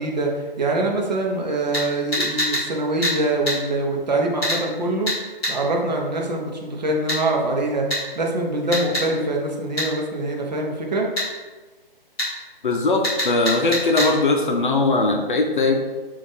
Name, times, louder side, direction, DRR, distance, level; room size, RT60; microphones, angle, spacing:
voice 1, 0.0-5.1 5.5-11.1, right 2 dB, 45° right, 0 dB, 0.8 m, -24 dB
sound 1, 1.7-1.9 2.1-2.6 3.0-3.2 3.5-3.6 4.4-4.6 5.1-5.2 5.4-5.5 7.1-7.2 7.9-8.0 8.7-9.1 9.8-9.9 11.2-11.3 12.2-12.3 13.0-14.1 14.6-14.7, left 1 dB, ahead, 0.4 m, -24 dB
voice 2, 12.6-15.7, left 3 dB, 60° left, 2 dB, 0.6 m, -20 dB
4.9 x 2.5 x 3.4 m, 1.3 s
figure-of-eight pair, 140°, 29 cm